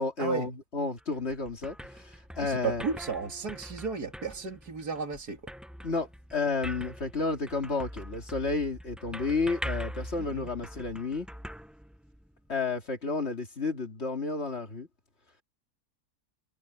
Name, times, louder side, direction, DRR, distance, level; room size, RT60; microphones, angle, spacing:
voice 1, 0.0-2.8 5.8-11.3 12.5-14.9, left 3 dB, 45° left, 2.7 m, -31 dB
sound 1, 1.0-12.5, equal, ahead, 0.7 m, -43 dB
voice 2, 2.4-5.5 10.2-10.5, right 5 dB, 75° right, 3.0 m, -34 dB
omnidirectional pair, 1.7 m